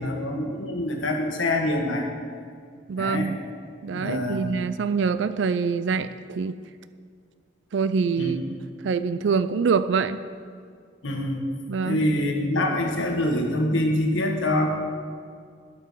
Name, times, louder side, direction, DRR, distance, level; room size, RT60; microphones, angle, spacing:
voice 1, 0.0-2.1 3.0-3.3 3.9-4.5 8.2-8.4 11.0-11.5 11.8-14.8, left 1 dB, 80° left, 2 dB, 1.6 m, -25 dB
voice 2, 2.9-3.4 3.8-6.5 7.7-8.4 8.8-10.2 11.7-12.0, right 5 dB, 70° right, 13 dB, 0.4 m, -25 dB
12.0 x 6.8 x 6.8 m, 2.1 s
head